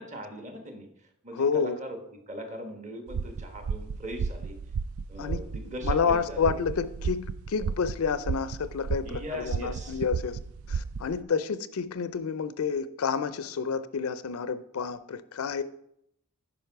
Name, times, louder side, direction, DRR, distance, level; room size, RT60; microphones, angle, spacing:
voice 1, 0.0-2.0 2.3-4.6 5.1-6.5 9.0-10.0, equal, 35° right, 5 dB, 1.2 m, -40 dB
voice 2, 1.3-1.8 5.2-5.4 5.8-10.4 10.7-15.6, left 6 dB, 80° left, 15 dB, 0.4 m, -29 dB
sound 1, 3.1-11.2, right 5 dB, 75° right, 0.3 m, -34 dB
10.0 x 5.3 x 4.6 m, 0.75 s
head